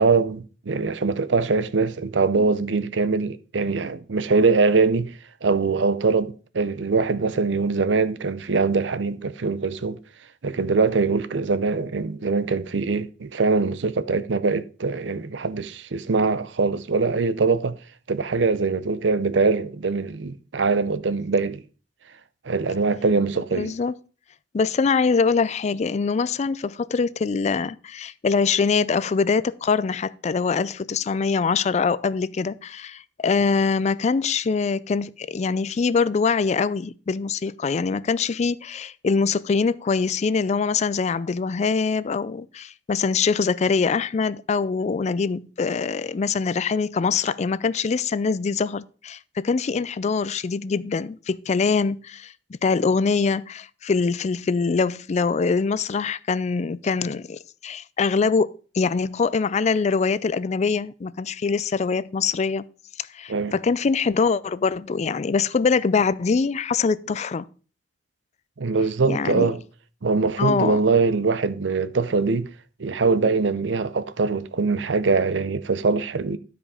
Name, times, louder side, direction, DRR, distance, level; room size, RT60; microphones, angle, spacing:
voice 1, 0.0-5.1 5.4-10.0 10.4-17.8 18.1-21.6 22.4-23.7 63.3-63.5 68.6-69.6 70.0-72.5 72.8-76.4, right 4 dB, 90° right, 0.7 m, -22 dB
voice 2, 23.5-23.9 24.5-52.3 52.6-62.7 63.0-67.5 69.1-69.5 70.4-70.8, left 5 dB, 40° left, 0.4 m, -23 dB
12.0 x 5.1 x 5.0 m
head